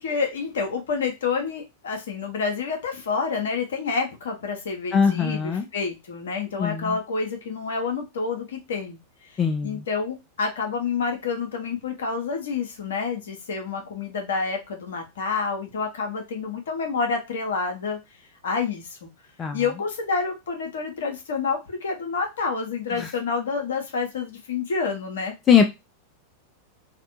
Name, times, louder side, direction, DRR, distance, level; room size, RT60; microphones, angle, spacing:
voice 1, 0.0-9.0 9.6-18.0 18.4-19.1 19.5-25.3, left 5 dB, 60° left, 3 dB, 0.7 m, -28 dB
voice 2, 4.9-5.7 6.6-7.0 9.4-9.8 19.4-19.6 23.0-23.1 25.5-25.6, left 7 dB, 25° left, 5 dB, 0.3 m, -21 dB
2.6 x 2.1 x 2.6 m, 0.23 s
figure-of-eight pair, 90°, 0 cm